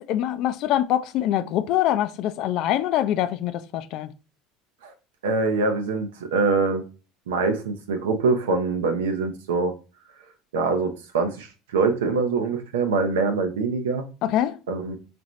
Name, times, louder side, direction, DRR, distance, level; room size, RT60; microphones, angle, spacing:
voice 1, 0.0-4.1 14.2-14.6, left 12 dB, 60° left, 0.4 m, -24 dB
voice 2, 5.2-6.8 7.3-9.7 10.5-14.0 14.7-15.0, right 4 dB, 90° right, 0.6 m, -24 dB
4.2 x 2.6 x 3.1 m
supercardioid pair, 90°, 0 cm